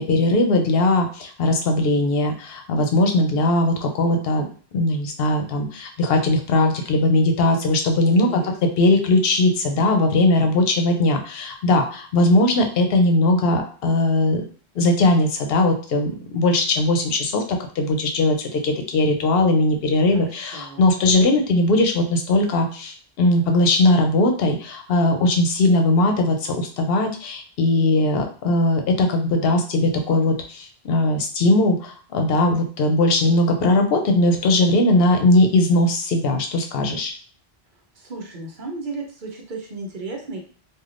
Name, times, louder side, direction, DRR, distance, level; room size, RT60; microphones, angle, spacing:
voice 1, 0.0-4.4 4.7-8.4 8.8-14.4 14.8-37.1, left 2 dB, 70° left, 4 dB, 0.8 m, -19 dB
voice 2, 7.9-8.5 20.1-20.9 38.0-40.4, right 3 dB, 55° right, 1 dB, 0.8 m, -34 dB
3.3 x 2.3 x 2.4 m, 0.42 s
omnidirectional pair, 1.1 m